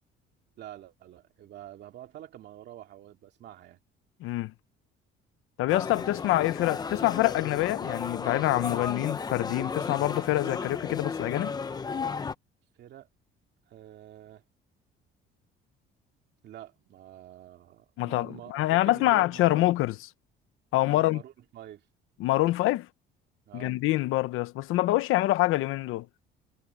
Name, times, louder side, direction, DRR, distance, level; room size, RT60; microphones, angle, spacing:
voice 1, 0.6-3.8 12.7-13.1 13.7-14.4 16.4-19.7 20.7-21.9 23.5-23.8, right 12 dB, 55° right, 2.3 m, -47 dB
voice 2, 4.2-4.5 5.6-11.6 18.0-19.9 20.7-21.2 22.2-22.9 23.5-26.1, left 17 dB, 80° left, 1.0 m, -26 dB
sound 1, 5.7-12.3, left 5 dB, 20° left, 0.8 m, -34 dB
cardioid pair, 165°, 21 cm